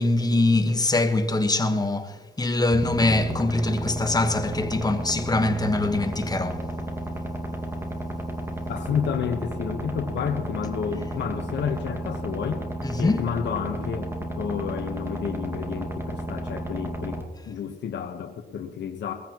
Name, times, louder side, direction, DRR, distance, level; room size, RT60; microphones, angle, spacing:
voice 1, 0.0-6.8 12.8-13.2, left 2 dB, 20° left, 1.3 m, -23 dB
sound 1, 2.7-17.2, right 1 dB, 10° right, 2.0 m, -32 dB
voice 2, 8.7-12.7 13.0-19.1, left 7 dB, 60° left, 1.1 m, -30 dB
20.5 x 15.0 x 3.0 m
cardioid pair, 90°, 20 cm